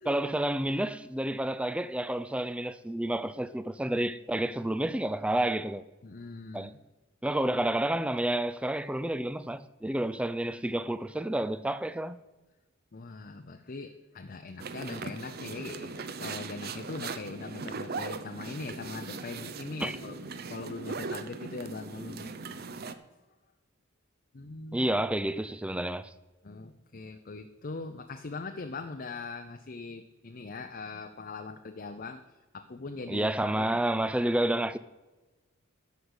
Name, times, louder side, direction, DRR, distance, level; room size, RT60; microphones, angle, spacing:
voice 1, 0.0-5.8 6.5-6.7 7.2-12.2 19.8-20.0 24.7-26.1 33.1-34.8, right 1 dB, 5° right, 0.4 m, -30 dB
voice 2, 6.0-6.7 12.9-22.3 24.3-24.9 26.4-34.0, left 3 dB, 45° left, 0.6 m, -41 dB
sound 1, 14.6-22.9, right 4 dB, 45° right, 0.6 m, -39 dB
12.5 x 5.3 x 8.1 m
head